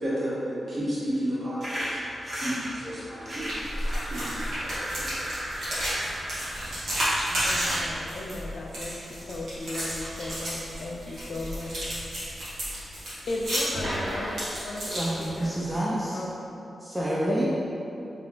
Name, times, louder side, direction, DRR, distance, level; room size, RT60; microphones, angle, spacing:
voice 1, 0.0-2.0 2.4-3.6 4.1-5.2, equal, 55° right, -10 dB, 1.4 m, -32 dB
sound 1, 1.6-7.7, equal, 30° right, 1.0 m, -36 dB
sound 2, 3.3-15.7, equal, 90° right, 1.5 m, -32 dB
voice 2, 7.4-11.7 13.3-15.6 16.1-16.3 17.3-17.4, left 2 dB, 65° left, -1 dB, 0.4 m, -36 dB
voice 3, 14.9-16.2 16.8-17.4, right 1 dB, 15° right, -6 dB, 0.4 m, -28 dB
3.3 x 3.0 x 3.8 m, 2.8 s
wide cardioid pair, 115°, 0 cm